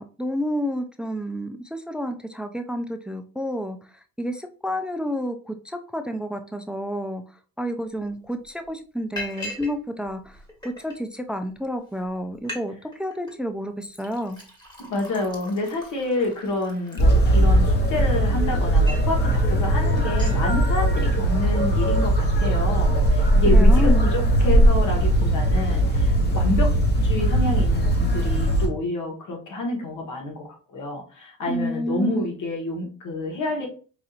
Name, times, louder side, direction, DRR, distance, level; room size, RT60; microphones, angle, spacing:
voice 1, 0.0-3.8 4.2-7.2 7.6-10.4 10.6-14.4 23.5-24.1 31.5-32.3, equal, 5° right, 8 dB, 0.3 m, -30 dB
Liquid, 8.0-8.1 8.4-8.7 9.2-9.7 10.1-11.0 11.6-11.7 12.0-12.1 12.3-12.6 12.9-13.3 13.8-17.6 18.2-19.2 19.6-19.7 20.0-20.4, left 1 dB, 15° left, 1.3 m, -39 dB
voice 2, 14.8-26.8 27.0-33.7, left 2 dB, 65° left, 1 dB, 1.5 m, -28 dB
sound 1, 17.0-28.7, right 1 dB, 30° left, 1.1 m, -19 dB
4.8 x 2.8 x 2.5 m, 0.38 s
cardioid pair, 100°, 32 cm